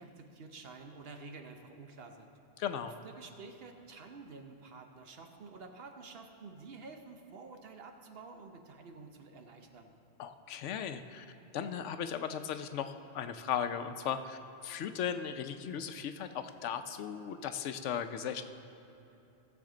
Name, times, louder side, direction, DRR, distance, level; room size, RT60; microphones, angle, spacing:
voice 1, 0.0-2.3 2.8-9.9, right 4 dB, 60° right, 4 dB, 1.0 m, -50 dB
voice 2, 2.6-2.9 10.2-11.3 11.5-18.4, left 8 dB, 85° left, 9 dB, 0.9 m, -37 dB
16.5 x 7.1 x 3.8 m, 3.0 s
omnidirectional pair, 1.2 m